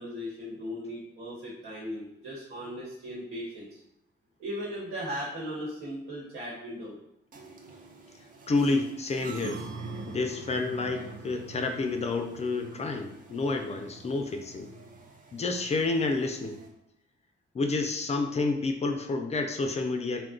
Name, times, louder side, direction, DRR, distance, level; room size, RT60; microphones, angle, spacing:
voice 1, 0.0-3.8 4.4-6.9, equal, 85° right, -6 dB, 1.1 m, -37 dB
sound 1, 7.3-16.7, right 3 dB, 40° right, 0.6 m, -45 dB
voice 2, 8.5-9.6 10.1-14.7 15.3-16.6 17.5-20.2, left 3 dB, 30° left, 5 dB, 0.4 m, -29 dB
2.3 x 2.1 x 3.7 m, 0.79 s
cardioid pair, 80°, 21 cm